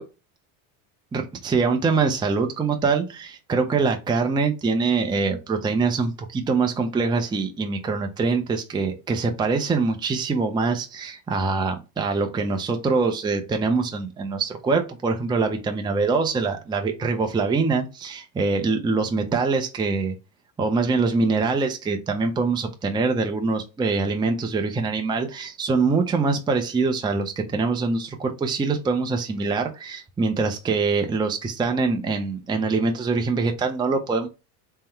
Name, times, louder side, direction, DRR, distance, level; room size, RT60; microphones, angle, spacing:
voice 1, 1.1-20.2 20.6-34.3, right 4 dB, 10° right, 5 dB, 0.5 m, -24 dB
3.7 x 2.2 x 4.3 m, 0.28 s
supercardioid pair, 105°, 48 cm